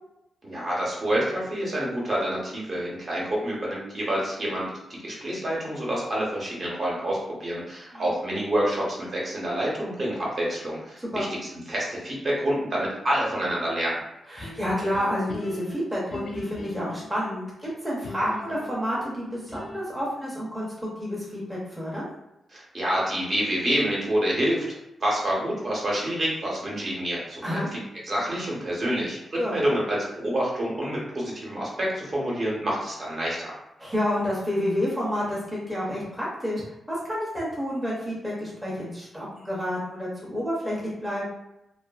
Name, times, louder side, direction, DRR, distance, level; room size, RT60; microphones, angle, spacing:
voice 1, 0.4-4.6 4.9-11.3 11.7-14.0 22.5-24.8 25.0-27.6 28.1-29.2 29.5-33.5, right 1 dB, 40° right, -4 dB, 0.8 m, -27 dB
voice 2, 11.0-11.3 14.3-22.1 27.4-27.7 29.3-29.6 33.8-36.6 36.9-41.2, equal, 5° right, -7 dB, 0.6 m, -29 dB
sound 1, 14.4-17.2 18.0-20.0, left 2 dB, 45° left, 0.3 m, -41 dB
2.5 x 2.4 x 2.3 m, 0.88 s
wide cardioid pair, 145°, 0 cm